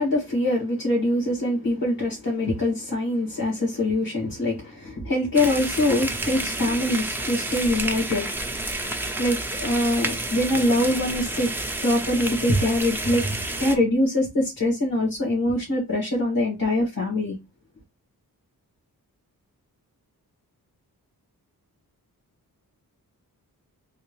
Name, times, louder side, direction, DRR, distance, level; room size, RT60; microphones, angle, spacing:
voice 1, 0.0-8.4 9.2-11.5 11.8-17.4, left 1 dB, 65° left, 2.0 m, -24 dB
sound 1, 5.3-13.8, right 2 dB, 5° right, 0.5 m, -30 dB
3.6 x 2.5 x 3.1 m
wide cardioid pair, 115°, 37 cm